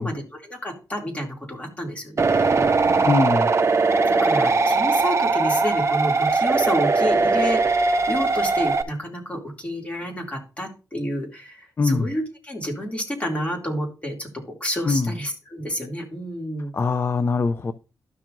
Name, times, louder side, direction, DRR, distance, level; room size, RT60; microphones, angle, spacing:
voice 1, 0.0-3.2 4.2-7.6 8.1-16.7, equal, 15° left, 2.5 m, -30 dB
sound 1, 2.2-8.8, right 4 dB, 40° right, 0.8 m, -20 dB
voice 2, 3.0-3.5 11.8-12.1 14.8-15.1 16.7-17.7, left 4 dB, 35° left, 0.5 m, -22 dB
12.5 x 5.9 x 2.5 m
cardioid pair, 95°, 8 cm